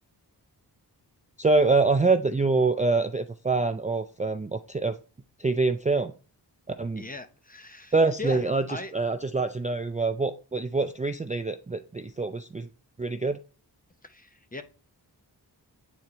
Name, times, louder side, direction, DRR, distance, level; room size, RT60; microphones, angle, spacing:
voice 1, 1.4-5.0 5.4-6.1 6.8-7.0 7.9-12.7 13.0-13.4, right 3 dB, 20° right, 7 dB, 0.4 m, -25 dB
voice 2, 6.9-8.4 8.7-8.9 14.0-14.6, left 1 dB, 20° left, 8 dB, 0.8 m, -39 dB
8.3 x 4.5 x 3.1 m, 0.37 s
wide cardioid pair, 70°, 42 cm